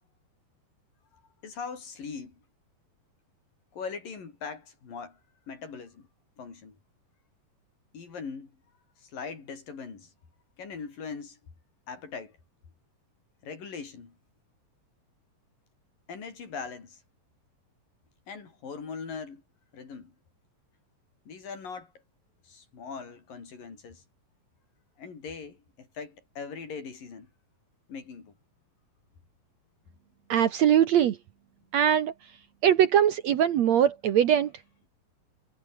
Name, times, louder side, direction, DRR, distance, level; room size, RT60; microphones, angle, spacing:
voice 1, 1.4-2.4 3.7-5.2 5.5-6.1 6.4-6.8 7.9-8.5 9.0-10.1 10.6-11.4 11.9-12.4 13.4-14.2 16.1-17.0 18.3-19.4 19.7-20.1 21.3-21.9 22.4-24.0 25.0-27.3 27.9-28.3, left 5 dB, 70° left, 6.5 m, -40 dB
voice 2, 30.3-31.2 31.7-32.1 32.6-34.5, right 10 dB, 65° right, 2.0 m, -21 dB
omnidirectional pair, 4.1 m